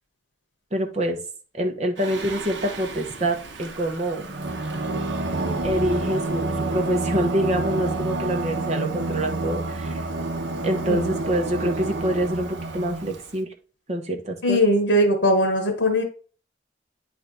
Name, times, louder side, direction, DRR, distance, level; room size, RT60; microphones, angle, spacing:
voice 1, 0.7-1.2 1.5-4.3 5.6-10.0 10.6-13.5 13.9-14.6, right 1 dB, 35° right, 3 dB, 1.1 m, -26 dB
Singing, 2.0-13.3, right 2 dB, 70° right, 0.9 m, -29 dB
voice 2, 14.4-16.0, equal, 75° left, 2 dB, 1.4 m, -20 dB
9.1 x 3.4 x 4.0 m, 0.39 s
head